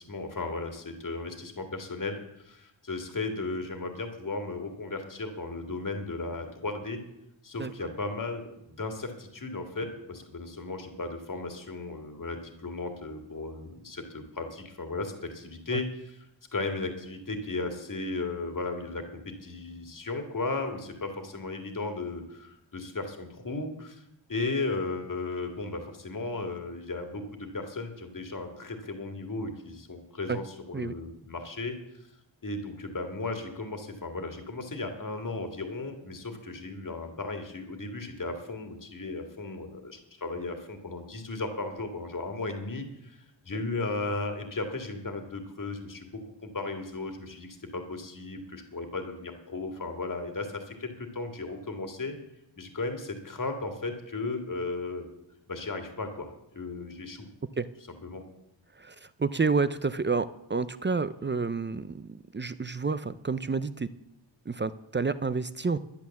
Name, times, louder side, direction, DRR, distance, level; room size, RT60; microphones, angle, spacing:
voice 1, 0.0-7.0 7.4-16.2 16.5-24.0 24.3-32.0 32.4-52.2 52.5-55.1 55.5-57.3 58.0-58.2, left 3 dB, 45° left, 5 dB, 2.0 m, -35 dB
voice 2, 7.6-7.9 15.7-15.8 30.3-30.4 30.7-30.9 57.6-57.7 58.8-63.9 64.5-65.8, right 4 dB, 25° right, 14 dB, 0.4 m, -29 dB
11.5 x 10.5 x 7.1 m, 0.83 s
wide cardioid pair, 150°, 46 cm